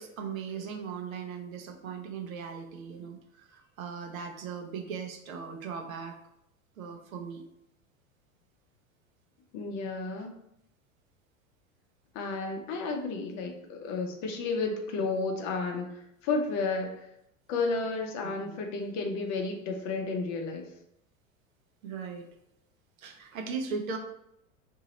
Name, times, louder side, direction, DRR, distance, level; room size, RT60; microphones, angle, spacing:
voice 1, 0.0-6.2 6.8-7.4 18.2-18.5 21.8-22.3 23.0-24.0, right 6 dB, 80° right, 4 dB, 0.8 m, -38 dB
voice 2, 9.5-10.3 12.1-15.9 16.2-17.0 17.5-20.7, left 3 dB, 40° left, 3 dB, 0.6 m, -32 dB
2.8 x 2.6 x 4.0 m, 0.78 s
hypercardioid pair, 90°, 41 cm